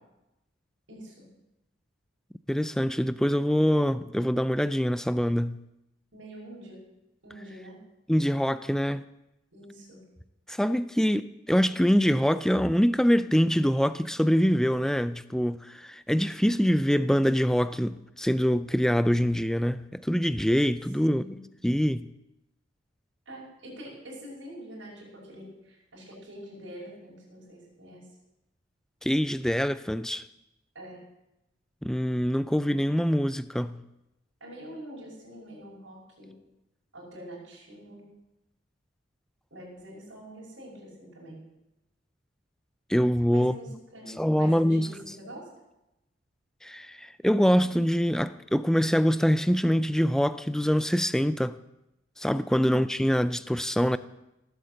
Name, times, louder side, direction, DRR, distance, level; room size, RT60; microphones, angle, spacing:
voice 1, 0.9-1.3 6.1-6.9 7.2-7.8 9.5-10.0 21.0-21.4 23.3-28.1 30.7-31.1 34.4-36.3 36.9-38.1 39.5-41.4 43.3-45.5, right 1 dB, 80° right, 5.6 m, -45 dB
voice 2, 2.5-5.6 8.1-9.0 10.5-21.2 21.6-22.1 29.0-30.2 31.8-33.8 42.9-43.5 44.2-44.9 46.6-51.6 52.2-54.0, equal, 5° left, 0.4 m, -24 dB
18.0 x 8.2 x 7.8 m
head